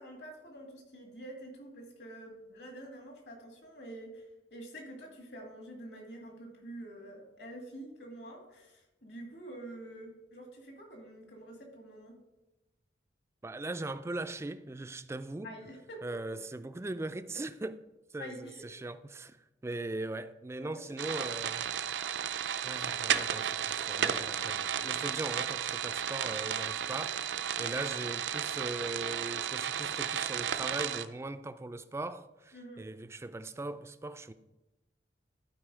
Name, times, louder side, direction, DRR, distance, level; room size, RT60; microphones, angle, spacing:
voice 1, 0.0-4.2 4.5-12.1 15.4-16.0 18.2-18.6 20.6-20.8 21.1-21.4 32.5-32.8, right 1 dB, 65° left, 2.2 m, -47 dB
voice 2, 13.4-15.5 16.0-17.8 18.1-21.7 22.6-34.3, right 2 dB, 15° right, 0.3 m, -40 dB
sound 1, 21.0-31.1, right 8 dB, 75° right, 0.5 m, -33 dB
12.0 x 4.6 x 4.9 m
head